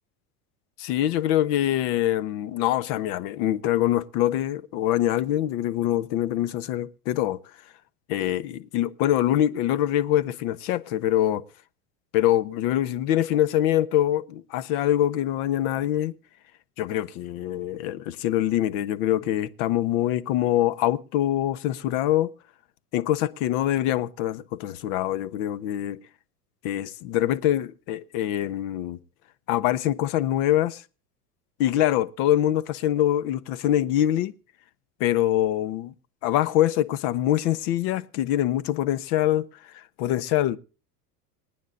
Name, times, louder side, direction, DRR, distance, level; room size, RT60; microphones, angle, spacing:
voice 1, 0.8-7.4 8.1-11.4 12.1-16.1 16.8-22.3 22.9-26.0 26.6-29.0 29.5-30.8 31.6-34.3 35.0-35.9 36.2-39.5 39.7-40.6, left 12 dB, 65° left, 1.1 m, -24 dB
27.0 x 9.3 x 2.6 m
supercardioid pair, 105°, 46 cm